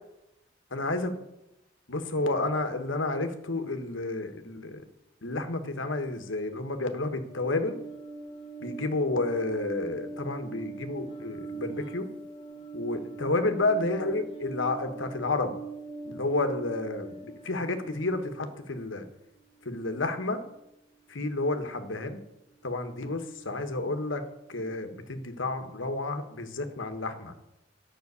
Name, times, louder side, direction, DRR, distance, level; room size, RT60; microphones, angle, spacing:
voice 1, 0.7-1.1 1.9-4.8 5.2-7.8 8.6-12.1 12.7-15.5 16.0-19.0 19.6-20.4 21.1-22.2 22.6-24.2 24.5-27.3, left 2 dB, 85° left, 8 dB, 1.4 m, -30 dB
sound 1, 7.3-18.8 19.2-20.5 20.9-22.1 22.5-23.8 24.2-24.8, right 4 dB, 25° left, 1.1 m, -43 dB
11.0 x 6.2 x 8.2 m, 0.86 s
head